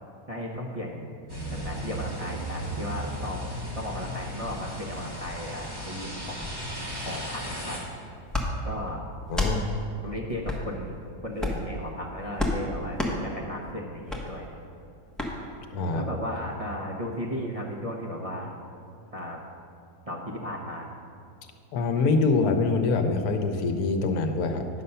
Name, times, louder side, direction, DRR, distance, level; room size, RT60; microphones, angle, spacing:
voice 1, 0.3-1.2 1.5-3.5 3.8-6.5 7.0-7.8 8.6-9.1 10.0-11.0 11.2-14.6 15.9-18.6 19.1-19.4 20.1-20.9, equal, 35° right, -3 dB, 0.6 m, -35 dB
sound 1, 1.3-7.8, equal, 15° right, 1.9 m, -35 dB
sound 2, 8.3-8.5 9.3-9.6 10.4-10.6 11.3-11.7 12.4-12.6 13.0-13.1 14.1-14.2 15.2-15.3, left 2 dB, ahead, 0.9 m, -28 dB
voice 2, 9.3-9.7 15.7-16.0 21.7-24.7, left 3 dB, 75° left, 6 dB, 1.2 m, -24 dB
10.0 x 6.6 x 5.5 m, 2.6 s
omnidirectional pair, 1.6 m